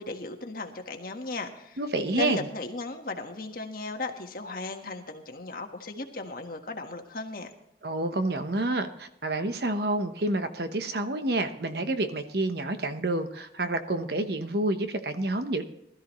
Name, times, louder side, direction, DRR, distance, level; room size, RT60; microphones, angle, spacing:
voice 1, 0.0-1.8 2.1-7.5, left 3 dB, 50° left, 4 dB, 1.5 m, -36 dB
voice 2, 1.8-2.5 7.8-15.6, right 2 dB, 60° right, 8 dB, 1.1 m, -28 dB
20.0 x 13.0 x 3.1 m, 0.77 s
head